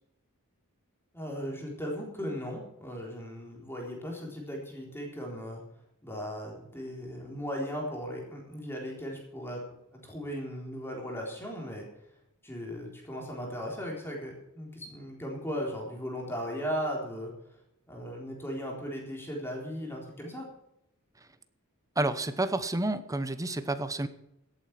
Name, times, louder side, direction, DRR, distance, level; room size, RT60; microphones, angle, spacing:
voice 1, 1.1-5.6 6.0-9.6 10.0-11.9 12.4-17.3 17.9-20.5, equal, 10° left, -1 dB, 3.8 m, -37 dB
voice 2, 22.0-24.1, right 2 dB, 15° right, 11 dB, 0.9 m, -30 dB
17.0 x 8.5 x 6.0 m, 0.82 s
head